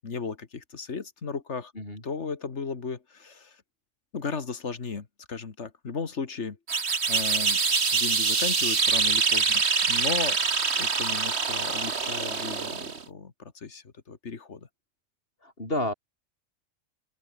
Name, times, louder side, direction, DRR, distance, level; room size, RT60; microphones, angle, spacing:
voice 1, 0.0-1.7 2.0-3.6 4.1-6.6 6.8-7.6 7.9-10.4 10.8-14.7, left 5 dB, 60° left, 2.2 m, -35 dB
sound 1, 6.7-13.0, right 5 dB, 55° right, 2.0 m, -25 dB
voice 2, 15.4-15.9, left 1 dB, 45° left, 7.7 m, -30 dB
open air
omnidirectional pair, 1.4 m